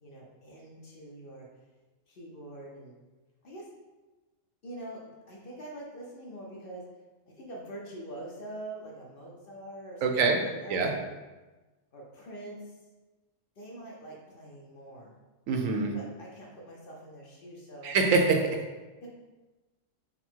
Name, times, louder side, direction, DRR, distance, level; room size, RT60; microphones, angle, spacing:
voice 1, 0.0-1.5 2.1-3.0 3.4-3.7 4.6-6.9 7.3-10.8 11.9-12.6 13.6-15.1 15.9-18.0 19.0-19.1, right 1 dB, 50° left, -3 dB, 0.8 m, -44 dB
voice 2, 10.0-10.4 10.7-10.9 15.5-15.9 17.8-18.6, right 4 dB, 85° right, 3 dB, 1.0 m, -24 dB
4.1 x 2.1 x 4.3 m, 1.2 s
omnidirectional pair, 1.3 m